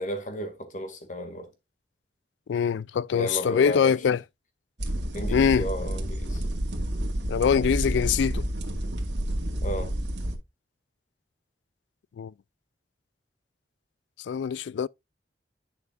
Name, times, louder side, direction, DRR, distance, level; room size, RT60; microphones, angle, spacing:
voice 1, 0.0-1.5 3.1-4.2 5.1-6.4 9.6-9.9, equal, 45° left, 2.1 m, -34 dB
voice 2, 2.5-4.2 5.3-5.7 7.3-8.5 12.2-12.3 14.2-14.9, left 7 dB, 85° left, 0.3 m, -23 dB
sound 1, 4.8-10.4, right 1 dB, 90° right, 2.2 m, -29 dB
11.0 x 5.9 x 2.5 m
head